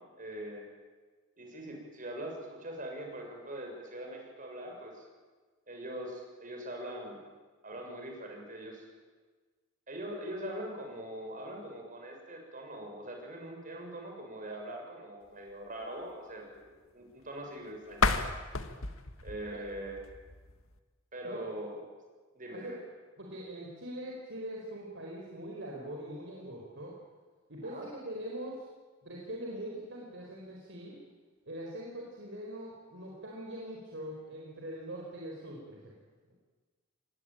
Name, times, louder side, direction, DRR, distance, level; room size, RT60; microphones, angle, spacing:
voice 1, 0.2-0.7 1.4-5.0 5.7-7.2 7.6-8.9 9.9-18.1 19.2-20.0 21.1-21.8 22.3-22.8 27.6-27.9, right 1 dB, 40° right, 2 dB, 6.8 m, -42 dB
sound 1, 17.9-20.8, left 4 dB, 90° left, 1.8 m, -33 dB
voice 2, 23.2-26.9 27.5-28.5 29.0-31.0 31.4-35.9, right 1 dB, 60° right, -2 dB, 4.7 m, -42 dB
26.5 x 20.0 x 9.0 m, 1.4 s
head